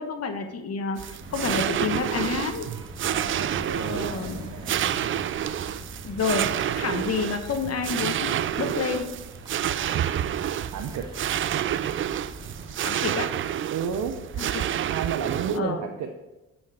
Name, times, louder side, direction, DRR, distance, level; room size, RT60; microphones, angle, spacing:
voice 1, 0.0-2.7 3.7-4.4 6.0-6.5 6.7-9.1 12.8-13.3 14.4-14.6 15.5-15.8, left 5 dB, 55° left, 7 dB, 1.1 m, -29 dB
sound 1, 1.0-15.6, right 10 dB, 45° right, 0.4 m, -29 dB
sound 2, 1.2-12.7, equal, 15° right, 1.9 m, -43 dB
voice 2, 3.0-4.9 10.7-11.1 13.7-14.2 14.9-16.1, right 7 dB, 70° right, 5 dB, 0.8 m, -32 dB
10.5 x 5.4 x 4.8 m, 1.1 s
cardioid pair, 90°, 30 cm